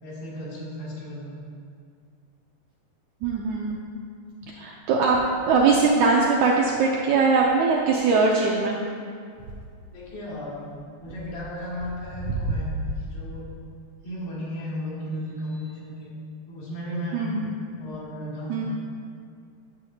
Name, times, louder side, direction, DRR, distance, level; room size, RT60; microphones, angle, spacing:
voice 1, 0.0-1.3 9.9-12.7 13.1-13.5 14.0-16.1 16.5-17.4 17.8-18.7, left 1 dB, 90° left, -8 dB, 3.9 m, -35 dB
voice 2, 3.2-3.8 4.5-5.2 5.5-8.8 17.1-17.6 18.5-18.6, right 4 dB, 80° right, -2 dB, 1.7 m, -21 dB
9.7 x 7.1 x 2.8 m, 2.3 s
omnidirectional pair, 3.9 m